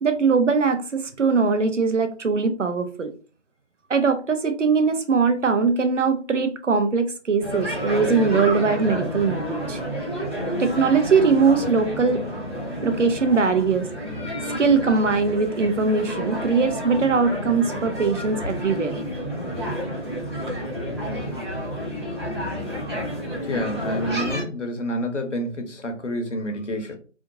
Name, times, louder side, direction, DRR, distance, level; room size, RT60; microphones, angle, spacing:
voice 1, 0.0-3.1 3.9-9.8 10.6-12.2 12.8-13.9 14.6-19.0, right 5 dB, 80° right, 0.8 m, -21 dB
sound 1, 7.4-24.4, equal, 20° right, 1.2 m, -30 dB
voice 2, 23.4-27.0, equal, 75° left, 1.1 m, -28 dB
3.6 x 2.5 x 2.6 m
figure-of-eight pair, 175°, 36 cm